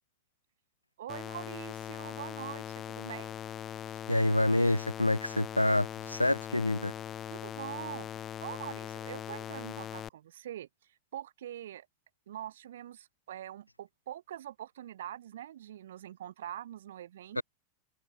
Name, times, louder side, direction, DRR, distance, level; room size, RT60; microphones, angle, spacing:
voice 1, 1.0-3.4 7.3-10.7 11.1-11.9 12.3-17.4, right 11 dB, 60° right, 2.4 m, -44 dB
sound 1, 1.1-10.1, left 10 dB, 25° left, 3.4 m, -41 dB
voice 2, 4.1-6.9 17.4-17.5, left 1 dB, 85° left, 0.5 m, -27 dB
figure-of-eight pair, 90°, 0 cm